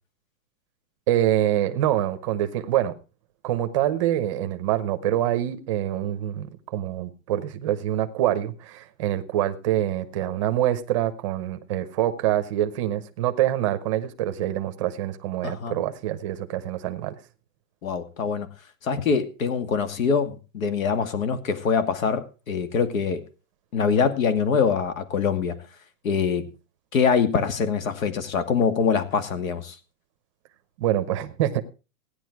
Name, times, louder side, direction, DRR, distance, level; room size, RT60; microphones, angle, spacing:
voice 1, 1.1-2.9 3.4-17.1 30.8-31.7, right 12 dB, 20° right, 9 dB, 0.8 m, -25 dB
voice 2, 15.4-15.8 17.8-18.5 18.8-23.2 23.7-25.6 26.0-26.5 26.9-29.7, left 6 dB, 65° left, 10 dB, 2.5 m, -24 dB
16.0 x 10.0 x 4.7 m, 0.33 s
supercardioid pair, 175°, 44 cm